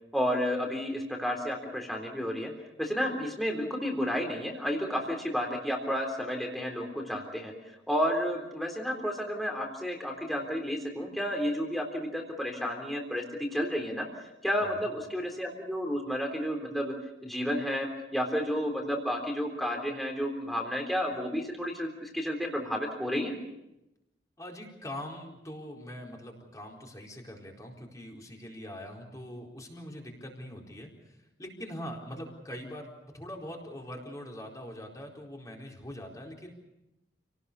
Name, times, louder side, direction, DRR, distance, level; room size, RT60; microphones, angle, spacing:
voice 1, 0.1-2.5 2.8-7.5 7.9-16.9 17.2-23.3, equal, ahead, 1 dB, 3.6 m, -31 dB
voice 2, 24.4-30.9 31.4-36.5, equal, 20° left, 0 dB, 4.4 m, -42 dB
29.0 x 18.5 x 6.9 m, 0.91 s
head